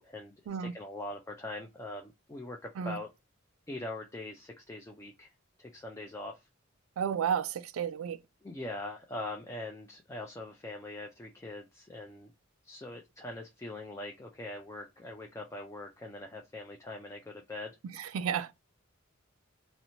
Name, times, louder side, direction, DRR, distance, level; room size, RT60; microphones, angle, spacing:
voice 1, 0.0-3.1 3.7-5.3 5.6-6.5 8.4-12.3 12.6-17.7, left 2 dB, 15° left, 0.3 m, -42 dB
voice 2, 7.0-8.2 18.0-18.5, right 8 dB, 85° right, 0.3 m, -32 dB
2.9 x 2.1 x 2.6 m
head